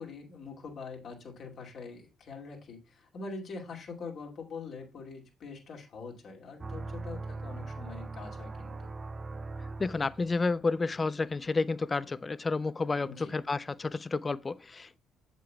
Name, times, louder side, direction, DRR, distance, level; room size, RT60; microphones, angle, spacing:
voice 1, 0.0-8.9 13.0-13.3, left 4 dB, 55° left, 2.3 m, -44 dB
sound 1, 6.6-10.5, right 3 dB, 35° right, 0.5 m, -40 dB
voice 2, 9.8-15.0, left 3 dB, 30° left, 0.4 m, -30 dB
8.1 x 7.6 x 2.3 m
hypercardioid pair, 55°, 0 cm